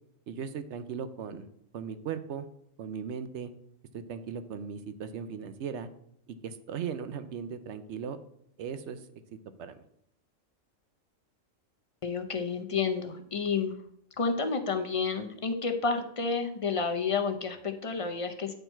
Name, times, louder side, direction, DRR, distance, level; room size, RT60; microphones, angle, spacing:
voice 1, 0.3-1.5 1.7-2.5 2.8-3.5 3.9-5.9 6.3-8.2 8.6-9.1 9.6-9.8, right 7 dB, 65° right, 11 dB, 0.8 m, -37 dB
voice 2, 12.0-13.7 14.2-18.5, left 5 dB, 45° left, 6 dB, 0.4 m, -30 dB
9.0 x 4.5 x 4.4 m, 0.72 s
omnidirectional pair, 1.4 m